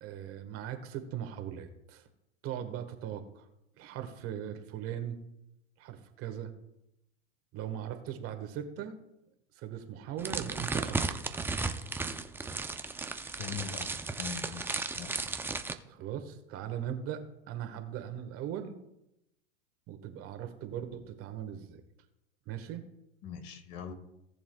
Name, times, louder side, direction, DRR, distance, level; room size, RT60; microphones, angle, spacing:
voice 1, 0.0-2.0 2.4-3.4 3.8-5.2 5.8-6.5 7.5-9.0 9.5-11.2 15.8-18.7 19.9-21.8 22.5-22.8, right 9 dB, 45° right, 7 dB, 1.5 m, -39 dB
sound 1, 10.2-15.7, right 3 dB, 5° right, 0.5 m, -35 dB
voice 2, 13.4-13.9 14.2-15.2 23.2-23.9, left 7 dB, 50° left, 7 dB, 1.7 m, -41 dB
18.0 x 7.1 x 2.3 m, 0.86 s
hypercardioid pair, 110°, 32 cm